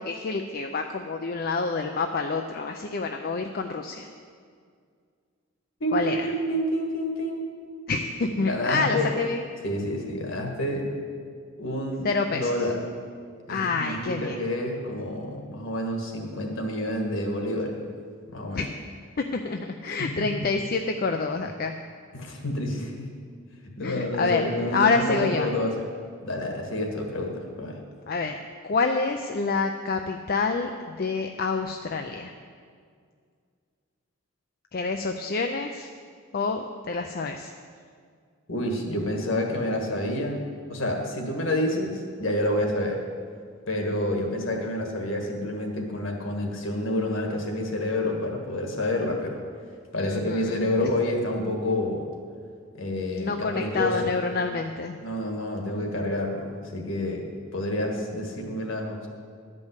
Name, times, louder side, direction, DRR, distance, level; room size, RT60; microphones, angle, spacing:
voice 1, 0.0-4.1 5.9-6.3 7.9-9.5 12.0-12.5 13.5-14.4 18.5-18.7 19.3-21.7 23.8-24.4 24.7-25.5 28.1-32.3 34.7-35.9 36.3-37.5 50.0-50.9 53.2-55.0, left 4 dB, 45° left, 5 dB, 0.4 m, -27 dB
voice 2, 5.8-7.5 8.5-9.1 9.6-11.0 11.6-12.8 13.5-17.8 18.3-18.6 20.0-20.5 22.1-23.1 23.8-25.7 26.2-27.8 38.5-40.4 40.7-43.0 43.7-49.4 49.9-52.1 52.8-54.1 55.0-59.1, left 1 dB, 60° left, 2 dB, 1.6 m, -28 dB
11.5 x 5.4 x 8.0 m, 2.1 s
head